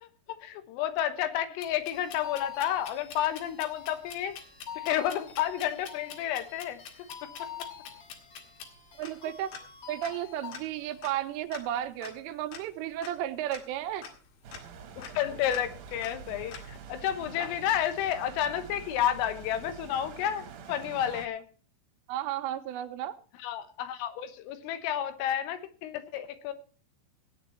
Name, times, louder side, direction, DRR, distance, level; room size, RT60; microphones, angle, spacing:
voice 1, 0.0-4.4 4.8-6.8 7.4-7.5 15.0-21.4 23.4-26.5, left 10 dB, 85° left, 10 dB, 3.8 m, -31 dB
sound 1, 1.6-17.0 17.4-18.0, left 7 dB, 65° left, 3.9 m, -47 dB
sound 2, 1.9-11.0, left 8 dB, 40° left, 2.3 m, -47 dB
voice 2, 9.0-9.5 9.9-14.0 22.1-23.2, right 12 dB, 85° right, 8 dB, 3.4 m, -33 dB
sound 3, 14.4-21.3, right 6 dB, 60° right, 2.2 m, -46 dB
17.5 x 9.2 x 4.5 m, 0.40 s
omnidirectional pair, 5.8 m